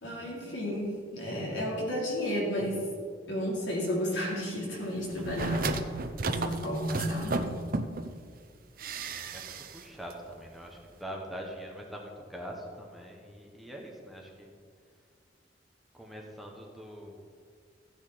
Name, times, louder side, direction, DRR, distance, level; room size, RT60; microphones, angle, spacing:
voice 1, 0.0-2.8 3.3-5.8 6.2-7.6, equal, 75° left, -4 dB, 3.8 m, -32 dB
sound 1, 5.1-8.1 8.8-9.8 10.1-10.2, right 3 dB, 50° right, 0.7 m, -34 dB
voice 2, 8.9-14.5 15.9-17.2, equal, ahead, -1 dB, 1.3 m, -44 dB
14.5 x 9.7 x 4.3 m, 2.1 s
head